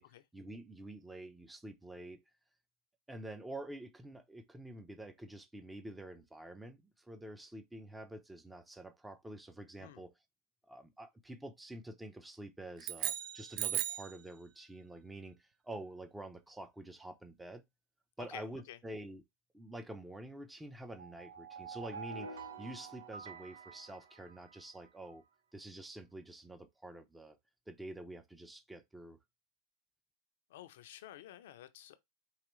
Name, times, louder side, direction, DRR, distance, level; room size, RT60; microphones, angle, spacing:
voice 1, 0.3-2.2 3.1-10.1 10.7-17.6 18.2-19.2 19.5-25.2 25.5-27.4 27.7-29.2, right 1 dB, 10° right, 0.8 m, -48 dB
sound 1, 12.8-14.2, right 12 dB, 55° right, 0.5 m, -36 dB
voice 2, 18.2-18.8 30.5-32.0, left 13 dB, 75° left, 0.6 m, -51 dB
sound 2, 20.9-24.9, right 5 dB, 90° right, 0.8 m, -48 dB
4.8 x 3.0 x 3.1 m
hypercardioid pair, 100°, 0 cm